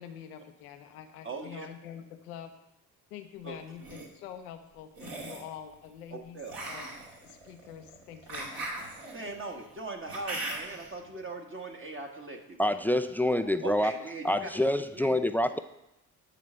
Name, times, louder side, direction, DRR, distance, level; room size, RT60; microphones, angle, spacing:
voice 1, 0.0-2.5 3.1-6.9 7.2-8.5 12.6-12.8 13.4-13.5 14.4-14.7, left 9 dB, 90° left, 7 dB, 0.7 m, -46 dB
voice 2, 1.2-1.7 3.4-3.6 6.1-6.5 9.1-12.6 13.6-14.5 14.9-15.6, right 3 dB, 30° right, 2 dB, 1.3 m, -40 dB
sound 1, 3.6-4.1 4.9-5.5 6.5-10.9, right 2 dB, 55° right, 2.2 m, -39 dB
voice 3, 12.6-13.9 14.2-15.6, left 1 dB, 5° left, 12 dB, 0.3 m, -26 dB
9.2 x 4.1 x 6.2 m, 0.87 s
hypercardioid pair, 45°, 43 cm